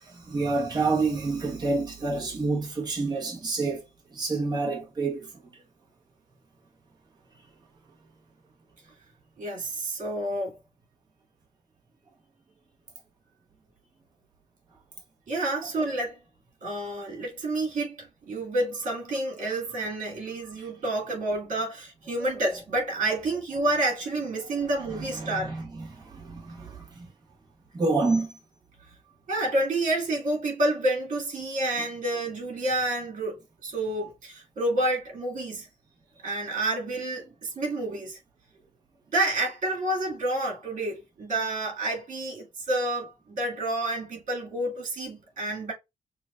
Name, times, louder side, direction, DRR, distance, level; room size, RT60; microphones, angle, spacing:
voice 1, 0.0-3.8 4.1-5.3 20.6-20.7 24.9-27.1 27.7-28.4, right 3 dB, 30° right, 1.3 m, -28 dB
voice 2, 9.4-10.6 15.3-16.1 16.6-25.5 29.3-35.7 36.2-38.2 39.1-45.7, right 1 dB, 75° right, 2.3 m, -29 dB
6.6 x 2.5 x 2.6 m
wide cardioid pair, 160°, 14 cm